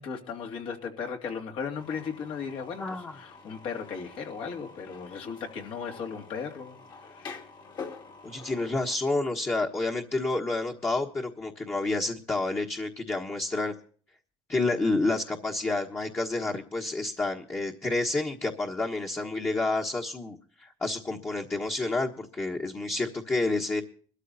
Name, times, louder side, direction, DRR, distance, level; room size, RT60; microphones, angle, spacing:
voice 1, 0.0-7.4, left 6 dB, 65° left, 3 dB, 2.9 m, -36 dB
sound 1, 1.8-9.0, left 5 dB, 45° left, 2.4 m, -46 dB
voice 2, 2.8-3.1 8.2-13.7 14.5-23.8, left 2 dB, 25° left, 1 dB, 1.4 m, -29 dB
22.5 x 13.0 x 2.7 m, 0.43 s
cardioid pair, 110°, 10 cm